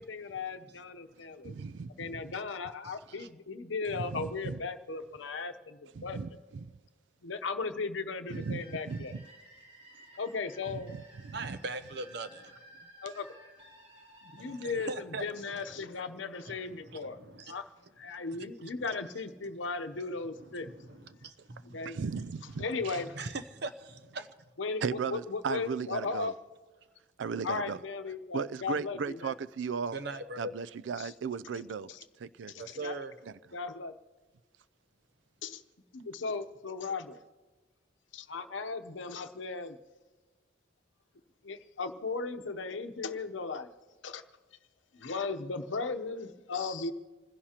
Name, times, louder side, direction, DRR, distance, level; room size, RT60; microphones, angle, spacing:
voice 1, 0.0-1.5 2.0-6.2 7.2-9.1 10.2-10.9 13.0-13.3 14.2-17.6 18.0-20.7 21.7-22.0 22.6-23.2 24.6-26.3 27.4-29.4 31.0-31.1 31.9-32.0 32.5-33.0 33.5-33.9 35.4-35.6 35.9-37.2 38.1-39.8 41.4-43.7 44.0-44.2 44.9-46.9, left 4 dB, 85° left, 0.8 m, -37 dB
voice 2, 0.7-1.8 2.1-2.4 2.8-3.3 11.3-12.5 12.8-12.9 14.4-15.6 16.5-17.5 18.3-18.7 19.9-20.0 20.3-21.9 22.7-24.3 29.9-30.5 32.6-33.1, right 3 dB, 60° right, 0.8 m, -42 dB
voice 3, 1.4-2.3 3.9-4.6 6.0-6.7 8.3-9.2 10.7-11.0 11.2-11.6 21.8-23.0 24.8-26.3 27.2-27.8 28.3-30.0 30.4-31.9 32.2-32.5, right 5 dB, 75° right, 0.4 m, -36 dB
sound 1, 8.3-15.9, equal, 35° right, 4.4 m, -56 dB
27.0 x 16.0 x 2.9 m
head